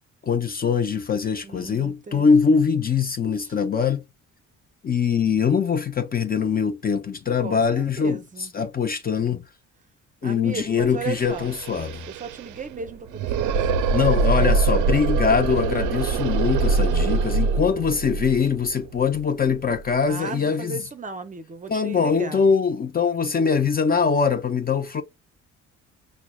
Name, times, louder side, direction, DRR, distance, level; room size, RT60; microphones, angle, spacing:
voice 1, 0.2-4.0 4.8-8.2 8.5-9.4 10.2-12.0 13.9-20.8 21.7-25.0, left 6 dB, 30° left, 0.4 m, -22 dB
voice 2, 1.4-2.6 3.4-3.6 7.4-8.5 10.2-11.5 12.1-14.6 20.1-22.4, right 5 dB, 25° right, 0.5 m, -36 dB
sound 1, 10.8-10.9 11.1-19.9, right 4 dB, 85° right, 0.5 m, -24 dB
5.8 x 2.1 x 2.2 m
cardioid pair, 90°, 30 cm